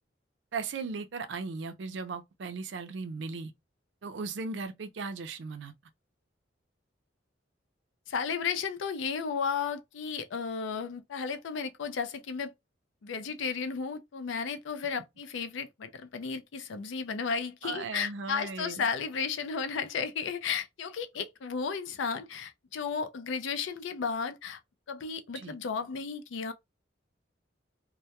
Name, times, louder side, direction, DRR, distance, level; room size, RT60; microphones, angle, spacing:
voice 1, 0.5-3.5 4.0-5.7 17.6-18.8 25.3-25.5, right 4 dB, 70° right, 0.4 m, -37 dB
voice 2, 8.1-12.5 13.0-24.6 24.9-26.5, left 5 dB, 80° left, 0.4 m, -34 dB
2.2 x 2.1 x 2.7 m
head